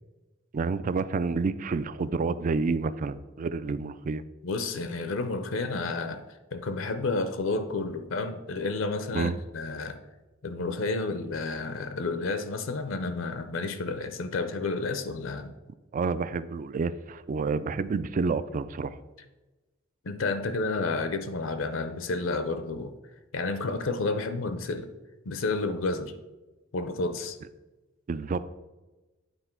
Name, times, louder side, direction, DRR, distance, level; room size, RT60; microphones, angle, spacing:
voice 1, 0.5-4.2 9.1-9.3 15.9-19.0 28.1-28.4, right 4 dB, 40° right, 14 dB, 0.3 m, -29 dB
voice 2, 4.4-6.2 6.5-10.0 10.4-15.6 20.0-22.9 23.3-24.9 25.2-26.1 26.7-27.4, left 3 dB, 70° left, 9 dB, 0.6 m, -31 dB
9.0 x 4.0 x 4.4 m, 1.1 s
head